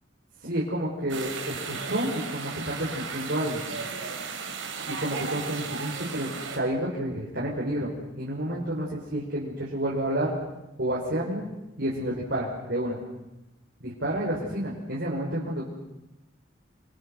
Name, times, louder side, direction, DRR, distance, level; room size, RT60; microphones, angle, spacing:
voice 1, 0.4-3.6 4.8-6.3 6.5-10.4 10.8-11.5 11.8-13.0 13.8-15.7, right 1 dB, 60° right, -4 dB, 5.5 m, -30 dB
sound 1, 1.1-6.6, right 5 dB, 90° right, 5.2 m, -35 dB
29.5 x 23.5 x 6.6 m, 0.94 s
head